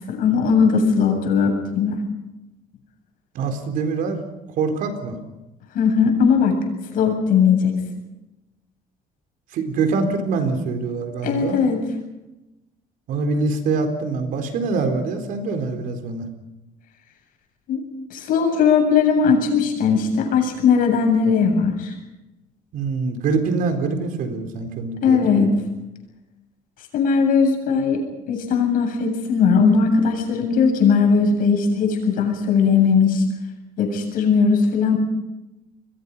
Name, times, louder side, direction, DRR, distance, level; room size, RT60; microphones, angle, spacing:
voice 1, 0.1-2.0 5.7-6.6 6.9-7.7 11.2-11.8 17.7-17.8 18.1-21.9 25.0-25.5 26.9-33.2 33.8-35.0, left 5 dB, 65° left, 3 dB, 7.8 m, -18 dB
voice 2, 3.3-4.2 4.6-5.2 9.5-11.6 13.1-16.3 22.7-25.5, right 4 dB, 65° right, 6 dB, 4.1 m, -24 dB
29.5 x 22.0 x 5.6 m, 0.96 s
cardioid pair, 145°, 16 cm